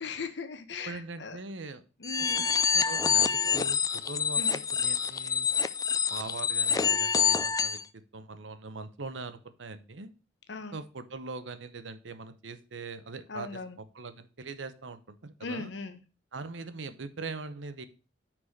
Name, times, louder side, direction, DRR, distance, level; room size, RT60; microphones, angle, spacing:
voice 1, 0.0-1.4 2.0-2.5 4.4-4.6 10.5-10.8 13.3-13.8 15.4-16.0, left 4 dB, 65° left, 8 dB, 0.9 m, -38 dB
voice 2, 0.9-1.8 2.7-5.5 6.1-10.1 10.7-15.7 16.3-17.9, right 3 dB, 80° right, 12 dB, 0.8 m, -42 dB
sound 1, 2.0-7.8, left 7 dB, 20° left, 0.3 m, -27 dB
6.0 x 4.8 x 6.4 m, 0.34 s
head